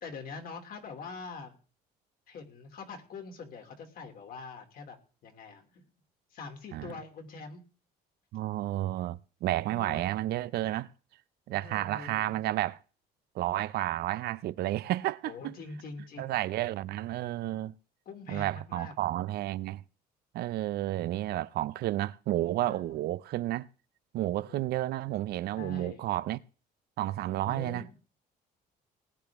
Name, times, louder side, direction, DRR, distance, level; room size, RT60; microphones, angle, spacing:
voice 1, 0.0-1.6 2.3-5.0 5.2-5.8 6.3-7.6 9.7-10.1 11.5-12.4 15.2-16.4 18.0-18.9 22.6-23.0 24.2-24.8 25.6-26.1 27.4-28.0, left 4 dB, 60° left, 2.9 m, -44 dB
voice 2, 8.3-10.9 11.5-12.8 13.4-15.5 16.2-17.7 18.3-19.8 20.3-23.7 24.1-26.4 27.0-27.8, right 15 dB, 70° right, 0.6 m, -31 dB
19.0 x 10.0 x 3.6 m
cardioid pair, 110°, 17 cm